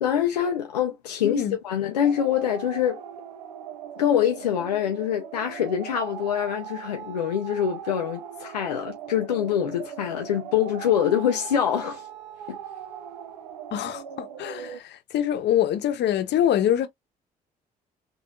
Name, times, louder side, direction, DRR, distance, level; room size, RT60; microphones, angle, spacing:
voice 1, 0.0-3.0 4.0-12.0 12.5-12.6, left 9 dB, 90° left, 0.4 m, -25 dB
voice 2, 1.2-1.6 13.7-16.9, left 11 dB, 60° left, 0.8 m, -25 dB
sound 1, 2.0-14.8, right 9 dB, 90° right, 0.4 m, -40 dB
3.6 x 2.5 x 2.4 m
hypercardioid pair, 45°, 20 cm